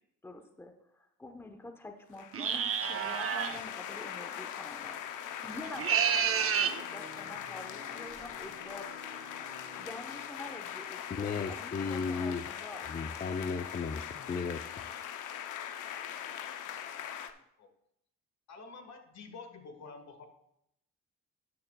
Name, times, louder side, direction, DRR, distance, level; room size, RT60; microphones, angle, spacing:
voice 1, 0.2-8.9 9.8-12.9, left 2 dB, 10° left, 5 dB, 0.9 m, -47 dB
sound 1, 2.1-17.3, left 9 dB, 85° left, 0.7 m, -41 dB
sound 2, 2.3-3.6 5.6-6.8, right 8 dB, 50° right, 0.8 m, -29 dB
sound 3, 4.8-11.7, equal, 25° right, 4.0 m, -54 dB
voice 2, 11.1-12.4 12.9-14.7, left 5 dB, 30° left, 5 dB, 0.6 m, -35 dB
voice 3, 17.3-17.7 18.5-20.3, left 4 dB, 65° left, 7 dB, 1.6 m, -49 dB
13.0 x 9.5 x 2.3 m, 0.79 s
cardioid pair, 90°, 30 cm